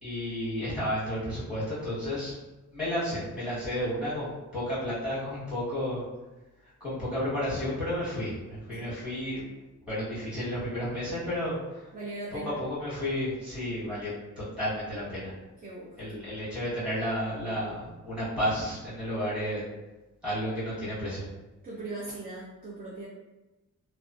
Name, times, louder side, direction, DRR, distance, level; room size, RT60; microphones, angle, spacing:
voice 1, 0.0-2.3 2.7-6.0 6.8-9.5 9.9-11.9 12.3-15.3 16.0-19.7 20.2-21.2, equal, 5° right, -11 dB, 1.2 m, -32 dB
voice 2, 11.9-12.5 15.6-16.2 21.6-23.1, right 2 dB, 30° right, -6 dB, 0.4 m, -39 dB
2.4 x 2.2 x 2.3 m, 1.1 s
wide cardioid pair, 160°, 32 cm